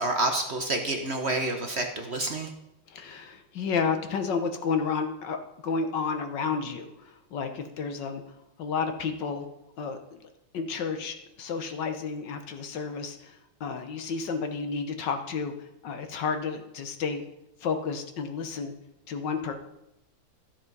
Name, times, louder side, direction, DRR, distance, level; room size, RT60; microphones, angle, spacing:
voice 1, 0.0-2.5, right 2 dB, 45° right, 4 dB, 1.0 m, -28 dB
voice 2, 2.9-5.4 5.6-8.2 8.6-9.5 9.8-10.2 10.5-17.2 17.6-18.7 19.1-19.5, left 5 dB, 65° left, 7 dB, 1.7 m, -31 dB
14.0 x 7.1 x 5.4 m, 0.88 s
omnidirectional pair, 2.1 m